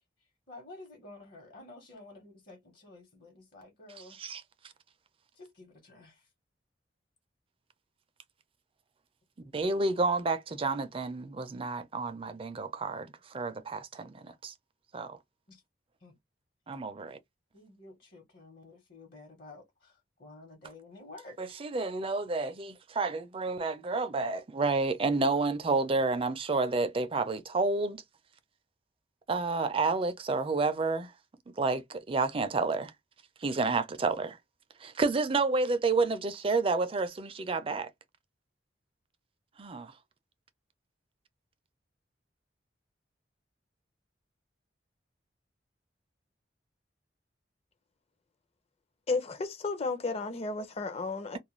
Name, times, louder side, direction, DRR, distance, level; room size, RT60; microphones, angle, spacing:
voice 1, 0.5-4.2 5.3-6.3 15.5-15.6 16.0-16.2 17.0-17.2 17.5-21.6, left 2 dB, 55° left, 1.1 m, -51 dB
voice 2, 9.5-14.5 14.9-15.2 16.7-17.2 21.4-28.0 29.3-31.1 31.6-32.9 33.4-34.4 34.8-37.9 39.6-39.9, right 3 dB, 30° right, 0.4 m, -30 dB
voice 3, 49.1-51.4, left 3 dB, 35° left, 0.5 m, -33 dB
2.4 x 2.2 x 3.0 m
head